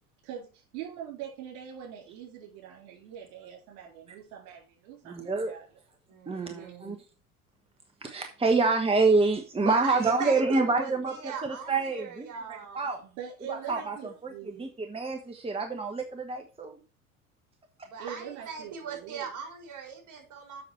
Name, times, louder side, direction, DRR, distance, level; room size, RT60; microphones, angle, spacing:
voice 1, 0.2-5.2 5.4-5.6 13.0-14.7 18.0-19.3, right 9 dB, 60° right, 1 dB, 4.0 m, -43 dB
voice 2, 5.1-5.5 6.3-7.0 8.0-13.0 13.5-16.7, right 3 dB, 15° right, 4 dB, 1.2 m, -27 dB
voice 3, 6.1-6.9 9.6-12.9 13.6-13.8 17.8-20.6, right 6 dB, 40° right, 2 dB, 4.4 m, -40 dB
7.7 x 6.0 x 5.7 m, 0.35 s
figure-of-eight pair, 75°, 44 cm